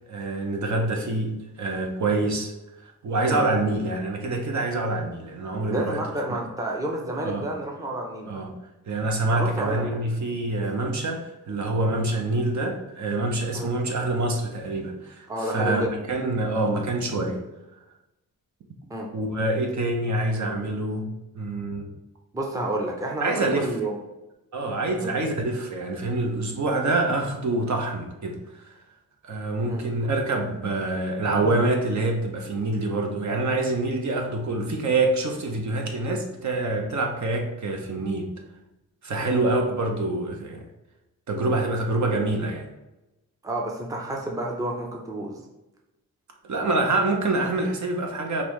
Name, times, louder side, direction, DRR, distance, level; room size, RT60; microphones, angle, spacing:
voice 1, 0.1-2.5 2.8-6.0 6.3-6.4 7.2-7.5 8.3-8.5 8.9-17.4 19.1-21.9 23.2-23.7 24.5-28.4 28.6-28.7 29.2-38.3 39.0-40.7 41.3-42.7 46.4-48.4, right 2 dB, 55° right, 2 dB, 0.8 m, -26 dB
voice 2, 5.7-8.4 9.3-10.0 13.5-13.7 15.3-15.9 18.9-19.1 22.3-23.9 25.0-25.1 29.7-29.8 39.2-39.4 43.4-45.4, right 1 dB, 10° right, 0 dB, 0.6 m, -30 dB
5.4 x 2.6 x 3.1 m, 0.97 s
wide cardioid pair, 130°, 35 cm